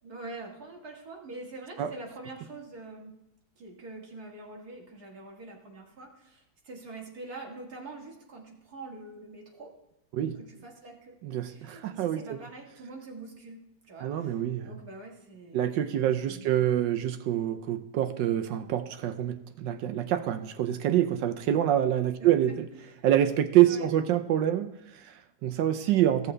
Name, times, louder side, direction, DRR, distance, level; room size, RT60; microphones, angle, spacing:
voice 1, 0.0-3.1 3.6-9.7 10.3-11.2 11.5-15.8 16.3-16.8 22.2-22.9 23.6-23.9, right 2 dB, 50° right, -1 dB, 2.2 m, -45 dB
voice 2, 11.2-12.4 14.0-14.7 15.5-22.6 23.0-26.3, right 11 dB, 75° right, 9 dB, 1.2 m, -26 dB
16.0 x 6.9 x 3.3 m, 0.87 s
omnidirectional pair, 2.2 m